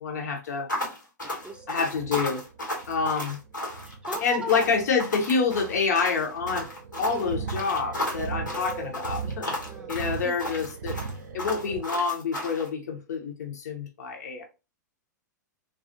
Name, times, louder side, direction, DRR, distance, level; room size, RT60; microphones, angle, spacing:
voice 1, 0.0-0.7 1.7-2.4 2.9-3.4 4.2-6.7 7.0-9.5 9.9-11.0 11.3-14.4, left 5 dB, 60° left, 0.6 m, -27 dB
sound 1, 0.7-12.7, left 1 dB, 80° left, 1.1 m, -34 dB
voice 2, 1.2-1.7 2.9-3.0 3.8-4.5 7.1-7.3 8.6-8.7 9.6-9.9, right 1 dB, 10° right, 0.4 m, -38 dB
sound 2, 1.4-11.8, right 6 dB, 65° right, 0.4 m, -38 dB
2.3 x 2.3 x 2.5 m
figure-of-eight pair, 100°, 10 cm